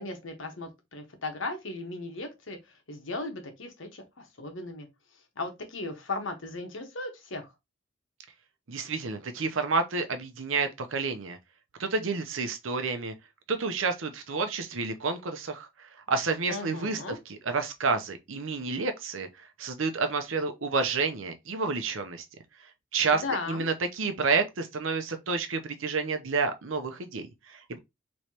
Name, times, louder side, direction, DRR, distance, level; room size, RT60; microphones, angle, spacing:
voice 1, 0.0-4.9 5.4-7.5 16.5-17.2 23.1-23.7, left 3 dB, 75° left, 1.2 m, -37 dB
voice 2, 8.7-11.4 11.8-13.1 13.5-22.2 22.9-27.8, right 4 dB, 80° right, 0.7 m, -30 dB
4.7 x 3.1 x 2.8 m
head